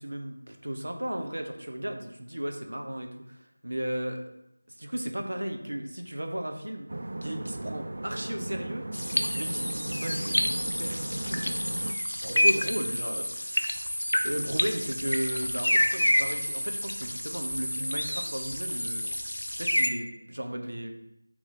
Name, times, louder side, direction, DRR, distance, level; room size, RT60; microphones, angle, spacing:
voice 1, 0.0-4.2 4.7-6.9 7.2-8.8 9.3-13.8 14.2-19.0 19.6-20.9, right 1 dB, 75° right, 4 dB, 0.7 m, -35 dB
sound 1, 6.9-12.0, right 1 dB, 55° right, 0.3 m, -36 dB
sound 2, 8.9-19.9, equal, 90° left, 0.5 m, -29 dB
3.7 x 3.0 x 4.0 m, 0.84 s
figure-of-eight pair, 170°, 0 cm